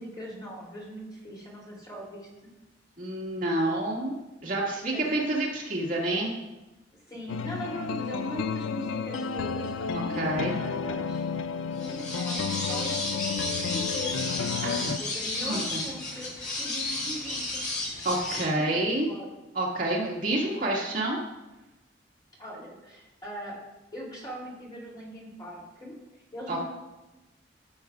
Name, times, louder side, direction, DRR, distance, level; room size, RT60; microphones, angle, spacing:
voice 1, 0.0-2.2 4.9-5.2 7.1-10.2 10.6-14.1 15.0-17.7 18.6-19.3 22.4-23.6 23.9-26.0 26.3-26.6, equal, 20° left, -5 dB, 3.0 m, -40 dB
voice 2, 3.0-4.1 4.4-6.3 10.2-10.6 14.6-15.0 15.4-15.8 18.0-19.1 19.6-21.2 26.5-26.6, right 1 dB, 45° right, -4 dB, 1.9 m, -28 dB
sound 1, 7.3-15.0, left 6 dB, 85° left, 0.4 m, -32 dB
sound 2, 11.8-18.4, left 2 dB, 40° left, 1.8 m, -33 dB
14.0 x 7.3 x 2.4 m, 1.0 s
head